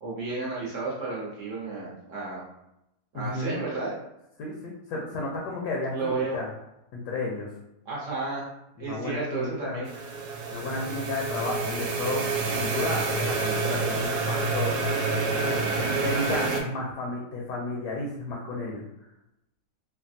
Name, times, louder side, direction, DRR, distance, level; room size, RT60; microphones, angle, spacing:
voice 1, 0.0-2.4 3.1-3.9 5.9-6.4 7.9-8.5 8.8-9.9, right 3 dB, 60° right, -5 dB, 0.9 m, -32 dB
voice 2, 3.1-3.6 4.4-6.5 6.9-7.5 8.8-9.8 10.5-14.8 15.5-18.8, left 2 dB, 75° left, -2 dB, 1.1 m, -32 dB
sound 1, 9.9-16.6, right 3 dB, 80° right, 1.2 m, -28 dB
3.3 x 2.2 x 2.6 m, 0.85 s
omnidirectional pair, 1.9 m